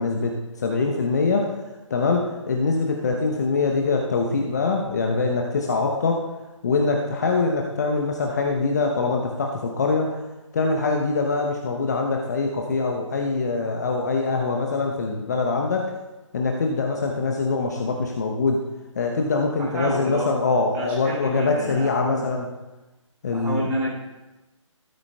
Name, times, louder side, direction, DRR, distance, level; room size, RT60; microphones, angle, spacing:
voice 1, 0.0-1.5 1.9-6.2 6.6-10.2 10.5-15.9 16.3-18.6 19.0-22.4 23.2-23.7, left 3 dB, 30° left, 1 dB, 0.8 m, -23 dB
voice 2, 19.6-20.3 20.7-22.3 23.3-23.9, right 1 dB, 10° right, -8 dB, 2.3 m, -29 dB
13.5 x 13.0 x 2.3 m, 1.1 s
figure-of-eight pair, 145°, 17 cm